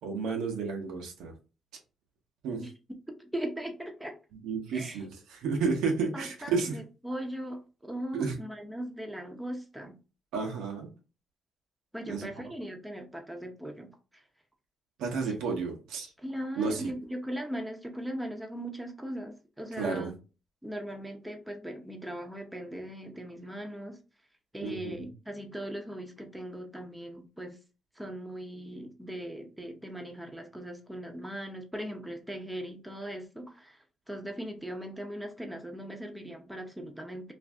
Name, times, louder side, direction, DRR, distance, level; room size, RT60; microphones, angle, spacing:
voice 1, 0.0-1.3 2.4-2.7 4.4-6.8 8.1-8.3 10.3-10.9 12.0-12.3 15.0-16.1 16.5-16.9 19.8-20.1 24.6-25.1, right 4 dB, 90° right, 0.8 m, -31 dB
voice 2, 3.1-4.2 4.7-5.0 6.1-10.0 11.9-13.9 16.2-20.1 20.6-24.0 24.5-27.6 28.0-33.8 34.1-37.3, equal, 5° right, 0.7 m, -39 dB
2.5 x 2.5 x 3.4 m
cardioid pair, 90°, 0 cm